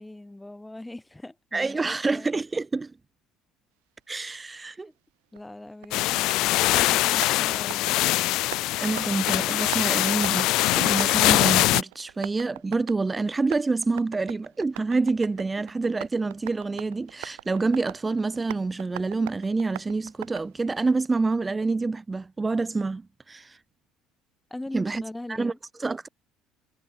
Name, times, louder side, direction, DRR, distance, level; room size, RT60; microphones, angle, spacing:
voice 1, 0.0-2.3 5.3-8.0 24.5-25.6, left 1 dB, 10° left, 5.6 m, -40 dB
voice 2, 1.5-2.9 4.1-4.9 8.8-10.5 10.7-23.6 24.7-25.0 25.3-25.5 25.8-26.1, right 3 dB, 20° right, 2.4 m, -27 dB
Tap, 5.4-20.9, right 28 dB, 85° right, 2.9 m, -43 dB
sound 1, 5.9-11.8, left 19 dB, 70° left, 0.7 m, -23 dB
supercardioid pair, 80°, 0 cm